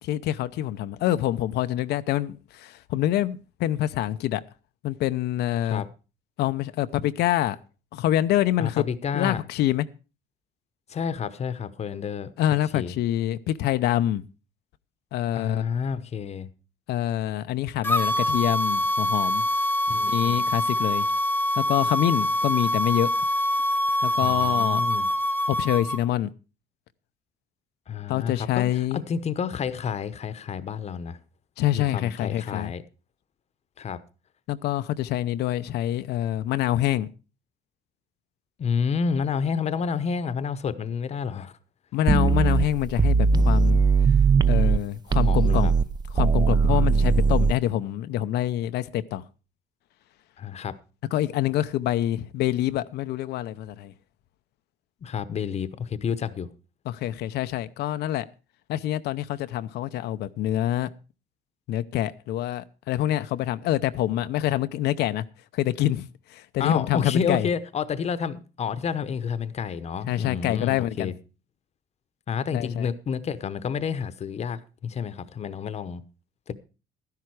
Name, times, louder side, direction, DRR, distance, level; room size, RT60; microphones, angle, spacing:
voice 1, 0.0-4.4 4.8-5.8 6.4-7.6 7.9-8.8 9.1-9.9 12.4-14.2 15.1-15.6 16.9-19.4 20.1-21.1 21.6-23.1 24.0-24.8 25.5-26.3 28.1-29.0 31.6-32.7 34.5-37.1 41.9-43.8 44.5-45.7 46.1-49.2 51.1-53.9 56.9-58.3 58.7-60.9 61.7-65.2 65.5-67.5 70.1-71.1 72.5-72.9, left 13 dB, 75° left, 0.7 m, -26 dB
voice 2, 8.6-9.4 10.9-12.3 12.7-12.9 15.3-16.5 19.9-20.4 24.2-25.1 27.9-31.2 31.7-32.8 33.8-34.0 38.6-41.5 45.2-45.7 50.4-50.8 55.0-56.5 66.6-71.1 72.3-76.0 76.5-76.6, left 6 dB, 40° left, 0.9 m, -29 dB
sound 1, 17.8-26.0, left 1 dB, 10° left, 0.8 m, -24 dB
sound 2, 42.1-44.8 45.1-47.5, right 5 dB, 25° right, 0.6 m, -20 dB
12.5 x 10.5 x 4.7 m
cardioid pair, 110°, 17 cm